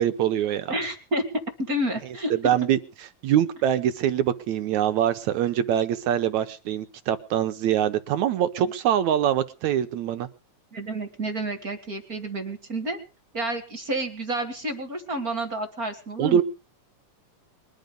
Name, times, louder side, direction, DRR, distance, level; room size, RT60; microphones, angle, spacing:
voice 1, 0.0-0.8 2.3-10.3 16.2-16.4, right 10 dB, 70° right, 10 dB, 2.1 m, -24 dB
voice 2, 0.7-2.3 8.6-8.7 10.7-13.0 13.3-16.4, right 1 dB, 30° right, 5 dB, 2.0 m, -30 dB
22.5 x 12.0 x 5.3 m, 0.36 s
omnidirectional pair, 3.8 m